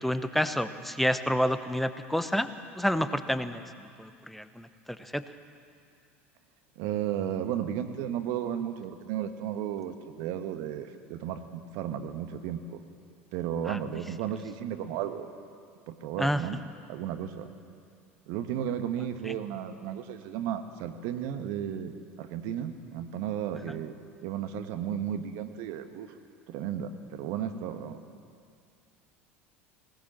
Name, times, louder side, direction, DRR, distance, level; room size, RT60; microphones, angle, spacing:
voice 1, 0.0-2.5 2.7-3.6 4.0-4.7 5.0-5.2 13.7-13.8 16.2-16.4 19.3-19.4, equal, ahead, 11 dB, 1.0 m, -28 dB
voice 2, 6.7-12.8 13.3-15.3 15.9-16.6 16.9-17.5 18.3-21.9 22.2-23.9 24.2-26.1 26.5-28.0, right 9 dB, 60° right, 8 dB, 1.4 m, -34 dB
19.0 x 18.5 x 7.4 m, 2.3 s
figure-of-eight pair, 70°, 7 cm